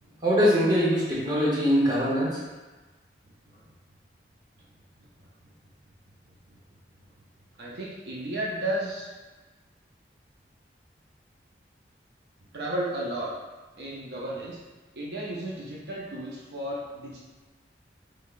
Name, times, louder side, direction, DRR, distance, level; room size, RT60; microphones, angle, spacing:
voice 1, 0.2-2.4, equal, 20° right, -7 dB, 0.9 m, -22 dB
voice 2, 5.0-5.5 6.3-6.6 7.6-9.1 12.5-13.3 13.8-14.6 14.9-17.2, right 1 dB, 70° right, -4 dB, 0.6 m, -34 dB
3.7 x 3.2 x 2.4 m, 1.2 s
head